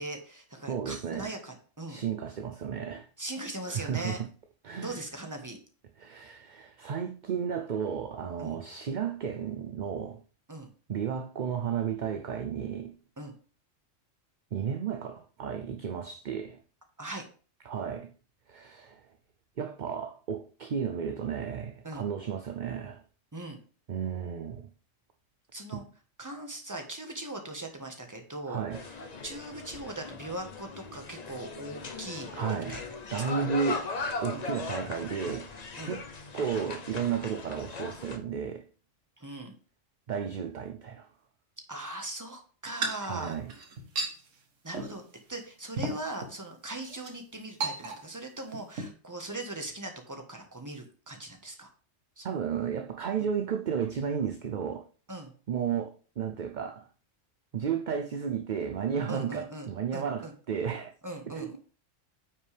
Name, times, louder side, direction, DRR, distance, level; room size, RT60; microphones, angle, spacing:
voice 1, 0.0-2.0 3.2-4.2 4.8-5.6 8.4-8.6 10.5-10.7 13.2-13.3 17.0-17.3 21.8-22.0 23.3-23.6 25.5-25.8 26.2-32.8 33.1-33.4 34.3-34.4 35.8-36.0 39.2-39.5 41.7-43.7 44.6-51.7 52.2-52.3 55.1-55.3 59.1-60.3 61.0-61.6, right 2 dB, 15° right, 1.3 m, -40 dB
voice 2, 0.7-1.3 1.9-3.1 3.7-4.3 4.6-5.0 6.0-10.2 10.9-12.9 14.5-16.6 17.7-18.1 18.5-19.1 19.6-23.0 23.9-24.7 25.7-25.8 28.5-28.8 32.3-32.8 33.1-33.9 34.2-35.5 35.8-36.0 36.3-38.6 40.1-41.1 43.0-43.5 52.2-54.9 55.5-56.9 57.5-60.9 61.3-61.6, right 7 dB, 50° right, 0.6 m, -33 dB
sound 1, 28.7-38.2, left 4 dB, 40° left, 0.7 m, -39 dB
sound 2, 42.7-44.2 44.7-45.0 45.3-45.4 45.8-46.3 46.8-47.1 47.6-48.3 48.5-48.9, right 3 dB, 75° right, 1.6 m, -34 dB
9.1 x 5.9 x 3.4 m
omnidirectional pair, 1.3 m